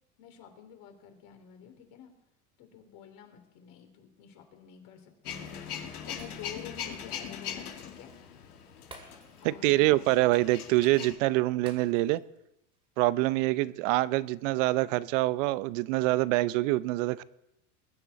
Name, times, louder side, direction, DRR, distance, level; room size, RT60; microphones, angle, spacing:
voice 1, 0.2-2.1 2.6-8.2 9.4-10.1 13.4-13.7, left 8 dB, 50° left, 3.3 m, -49 dB
Male speech man speaking / Vehicle / Engine starting, 5.2-11.1, left 8 dB, 90° left, 2.3 m, -41 dB
Shatter, 6.2-6.9 7.2-7.4 8.9-9.7 10.0-10.1 11.7-12.4 12.7-12.9, right 2 dB, 10° right, 2.1 m, -53 dB
voice 2, 9.4-12.2 13.0-17.2, right 18 dB, 60° right, 0.7 m, -25 dB
21.5 x 9.9 x 4.1 m
supercardioid pair, 115°, 43 cm